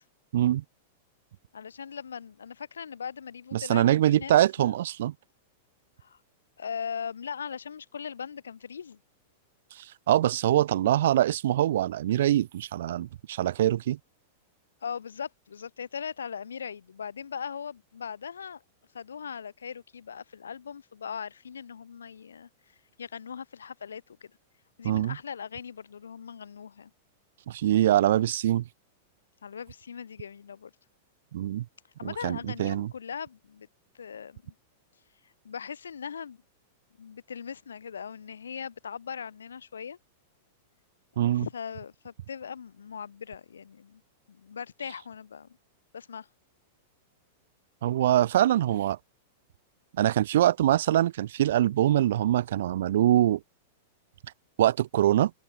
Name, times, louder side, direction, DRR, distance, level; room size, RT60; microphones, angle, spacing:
voice 1, 0.3-0.6 3.5-5.1 9.8-14.0 24.8-25.2 27.5-28.6 31.3-31.7 32.0-32.9 41.2-41.5 47.8-49.0 50.0-53.4 54.6-55.3, right 12 dB, 60° right, 0.5 m, -24 dB
voice 2, 1.5-4.3 4.6-4.8 6.0-6.2 6.6-9.0 14.8-18.6 18.9-24.3 24.8-26.9 29.4-30.7 32.0-33.7 33.9-34.5 35.2-36.4 37.0-40.0 41.2-44.0 44.3-45.6 45.9-46.3, left 7 dB, 75° left, 0.9 m, -39 dB
figure-of-eight pair, 95°, 0 cm